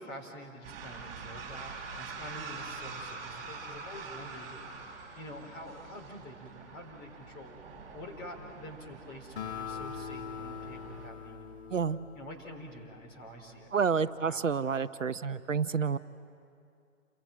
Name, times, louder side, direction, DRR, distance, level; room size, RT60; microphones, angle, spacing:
voice 1, 0.0-4.6 5.1-7.6 7.9-11.6 12.1-13.7 14.2-14.5, equal, 20° left, 0 dB, 3.9 m, -47 dB
sound 1, 0.6-11.1, right 4 dB, 20° right, 5.0 m, -45 dB
Acoustic guitar, 9.4-12.9, left 7 dB, 50° left, 2.1 m, -42 dB
voice 2, 13.7-16.0, right 6 dB, 70° right, 13 dB, 0.8 m, -29 dB
28.5 x 23.5 x 9.0 m, 2.4 s
figure-of-eight pair, 135°, 40 cm